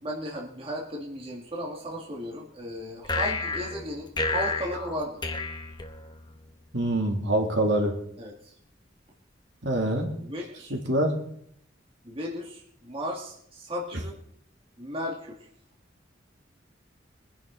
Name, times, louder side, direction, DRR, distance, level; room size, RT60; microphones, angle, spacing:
voice 1, 0.0-5.3 8.2-8.5 9.9-10.8 12.0-14.2 14.8-15.4, equal, 30° right, -2 dB, 2.0 m, -35 dB
sound 1, 3.0-6.5, left 3 dB, 25° left, 1.2 m, -31 dB
voice 2, 6.7-7.9 9.6-10.1 10.7-11.2, right 1 dB, 65° right, 1 dB, 2.8 m, -25 dB
23.0 x 10.5 x 3.9 m, 0.70 s
head